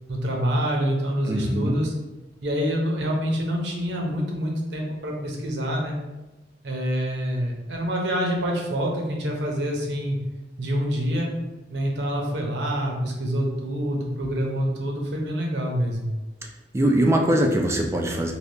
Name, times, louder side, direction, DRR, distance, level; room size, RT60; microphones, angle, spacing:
voice 1, 0.1-1.9 2.4-5.9 6.6-10.2 10.6-11.3 11.7-16.1, equal, 65° right, 0 dB, 0.7 m, -26 dB
voice 2, 1.3-1.8 16.7-18.3, right 1 dB, 15° right, 2 dB, 0.3 m, -21 dB
3.4 x 2.8 x 2.7 m, 1.0 s
head